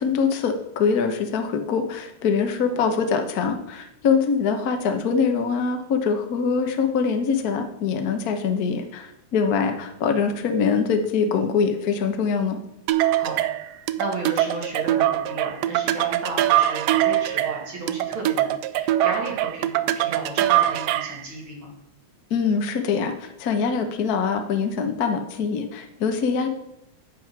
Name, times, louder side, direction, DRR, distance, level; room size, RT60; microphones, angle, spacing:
voice 1, 0.0-12.6 22.3-26.5, left 5 dB, 85° left, 6 dB, 0.8 m, -23 dB
sound 1, 12.9-21.2, right 13 dB, 90° right, 1.4 m, -23 dB
voice 2, 13.2-21.7, right 2 dB, 45° right, -2 dB, 3.3 m, -34 dB
8.5 x 8.3 x 6.0 m, 0.83 s
omnidirectional pair, 3.4 m